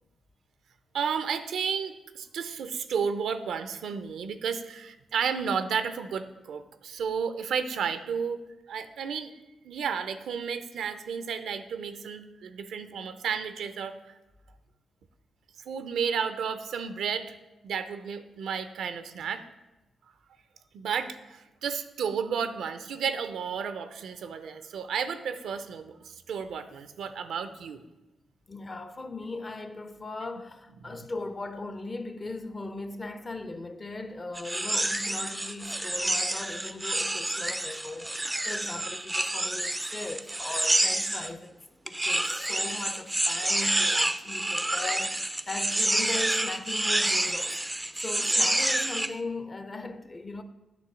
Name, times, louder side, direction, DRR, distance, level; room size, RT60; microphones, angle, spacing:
voice 1, 0.9-9.3 9.6-14.1 15.7-17.3 17.6-19.4 20.7-27.8 30.8-31.0, right 6 dB, 80° right, 0.4 m, -32 dB
voice 2, 28.5-41.6 41.8-47.6 48.0-50.4, left 2 dB, 35° left, 0.6 m, -38 dB
sound 1, 34.4-41.3 41.9-49.1, right 1 dB, 15° right, 0.3 m, -28 dB
8.4 x 3.1 x 6.0 m
supercardioid pair, 60°, 0 cm